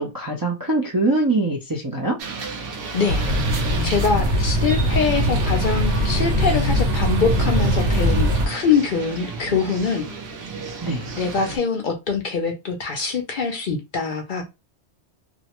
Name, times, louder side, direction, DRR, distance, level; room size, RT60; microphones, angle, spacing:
voice 1, 0.0-2.2 10.8-11.1, right 2 dB, 30° right, 0.4 m, -23 dB
sound 1, 2.2-11.6, right 4 dB, 60° right, 0.8 m, -34 dB
voice 2, 2.9-3.2 3.8-10.1 11.2-14.4, left 5 dB, 60° left, 0.6 m, -23 dB
sound 2, 3.1-8.5, equal, 90° right, 1.1 m, -21 dB
2.5 x 2.0 x 2.8 m
omnidirectional pair, 1.2 m